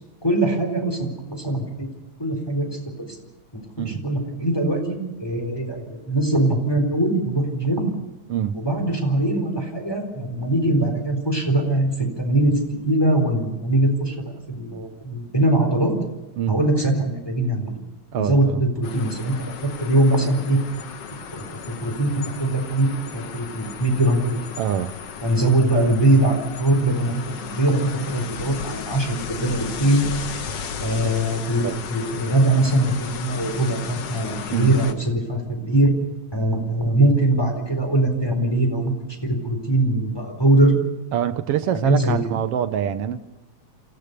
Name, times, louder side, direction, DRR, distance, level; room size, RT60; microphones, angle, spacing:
voice 1, 0.2-1.9 2.2-2.7 3.0-3.1 3.5-3.6 3.9-7.9 8.5-15.9 16.5-17.7 18.1-20.6 21.3-22.1 22.4-24.6 25.2-30.0 30.8-35.9 36.3-38.9 39.2-40.8 41.8-42.4, right 1 dB, 10° left, 3.9 m, -22 dB
voice 2, 18.1-18.6 24.6-24.9 31.6-31.8 34.5-34.8 41.1-43.2, right 9 dB, 65° right, 1.6 m, -25 dB
sound 1, 18.8-34.9, left 7 dB, 60° left, 2.2 m, -35 dB
28.0 x 15.5 x 6.8 m
omnidirectional pair, 3.4 m